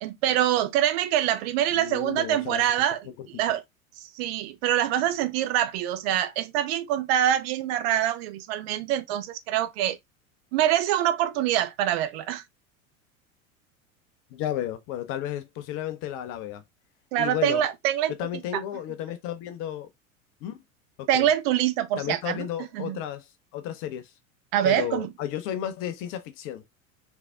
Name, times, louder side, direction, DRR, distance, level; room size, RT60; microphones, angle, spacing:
voice 1, 0.0-3.6 4.0-10.0 10.5-12.4 17.1-18.1 18.5-18.6 21.1-22.5 22.7-23.0 24.5-25.1, right 11 dB, 50° right, 0.5 m, -25 dB
voice 2, 1.7-2.6 14.3-16.6 17.2-17.6 18.2-19.9 20.4-20.6 21.0-21.3 22.0-23.3 23.5-24.1 24.6-26.6, left 11 dB, 35° left, 0.4 m, -33 dB
3.4 x 3.2 x 2.3 m
figure-of-eight pair, 80°, 42 cm